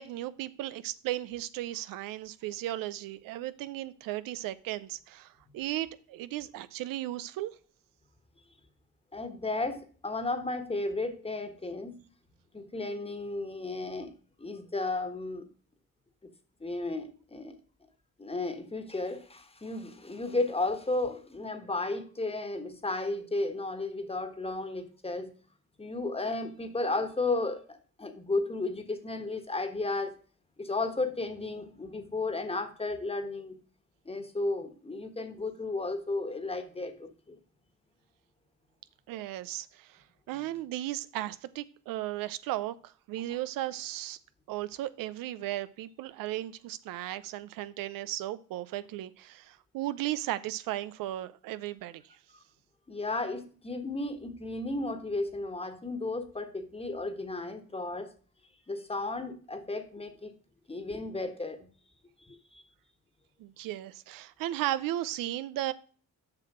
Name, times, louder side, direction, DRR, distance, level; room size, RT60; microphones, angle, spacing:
voice 1, 0.0-7.5 39.1-44.2 44.5-52.0 63.4-65.7, right 14 dB, 85° right, 0.6 m, -36 dB
voice 2, 9.1-11.9 12.5-14.1 14.4-15.4 16.2-16.3 16.6-17.6 18.2-25.3 25.8-30.1 30.6-33.6 34.0-37.4 43.3-43.4 52.9-58.1 58.7-60.3 60.7-61.7 62.2-62.4, left 2 dB, 15° left, 1.4 m, -34 dB
7.6 x 6.0 x 6.1 m
cardioid pair, 85°, 33 cm